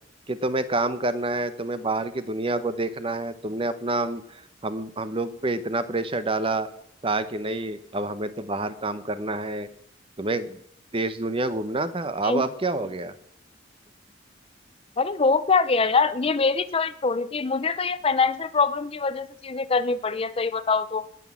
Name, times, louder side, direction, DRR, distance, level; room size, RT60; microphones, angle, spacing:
voice 1, 0.3-6.7 7.0-9.7 10.2-10.6 10.9-13.1, right 2 dB, 30° right, 12 dB, 0.8 m, -28 dB
voice 2, 15.0-21.0, left 4 dB, 30° left, 14 dB, 0.5 m, -24 dB
18.5 x 6.2 x 7.2 m, 0.68 s
head